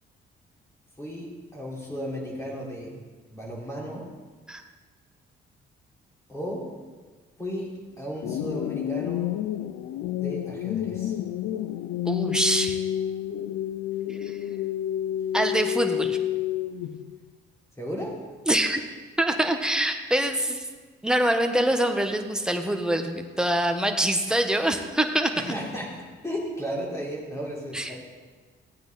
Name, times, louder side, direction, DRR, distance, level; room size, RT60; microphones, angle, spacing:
voice 1, 1.0-2.9 3.3-4.1 6.3-6.7 7.4-9.3 10.2-11.2 17.8-18.2 25.3-25.9 26.2-28.0, equal, 15° left, -4 dB, 4.1 m, -34 dB
sound 1, 8.2-17.2, left 11 dB, 85° left, 0.5 m, -29 dB
voice 2, 12.0-12.8 14.1-14.4 15.3-16.2 18.5-18.8 19.2-20.7 21.0-25.3 27.7-27.9, right 1 dB, 5° right, 4 dB, 1.2 m, -24 dB
16.5 x 9.3 x 4.1 m, 1.4 s
cardioid pair, 90°, 20 cm